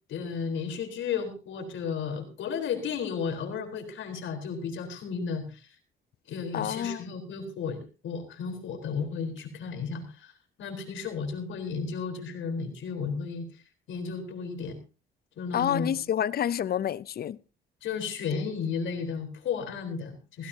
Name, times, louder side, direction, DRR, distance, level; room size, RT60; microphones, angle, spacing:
voice 1, 0.1-5.7 6.3-10.3 10.6-13.5 13.9-14.8 15.4-16.0 17.8-20.5, left 5 dB, 75° left, 4.1 m, -33 dB
voice 2, 6.5-7.0 15.5-17.4, left 10 dB, 50° left, 0.6 m, -28 dB
17.0 x 16.5 x 2.8 m
cardioid pair, 90°, 20 cm